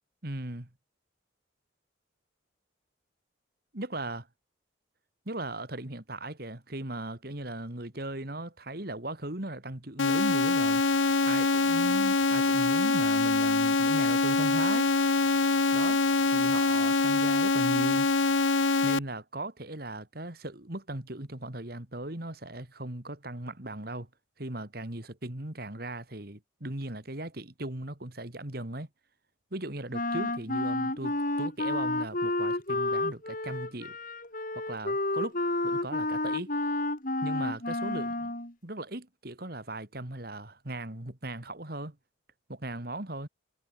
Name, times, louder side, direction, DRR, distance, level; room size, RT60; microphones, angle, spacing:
voice 1, 0.2-0.7 3.7-4.2 5.3-10.8 11.2-14.9 15.7-16.0 16.3-18.1 18.8-24.1 24.4-28.9 29.5-34.0 34.5-36.5 37.2-38.3 38.6-42.0 42.5-43.3, right 1 dB, 50° right, 2.4 m, -38 dB
sound 1, 10.0-19.0, left 3 dB, 80° left, 1.1 m, -24 dB
Wind instrument woodwind instrument, 29.9-38.5, left 2 dB, 45° left, 4.5 m, -30 dB
head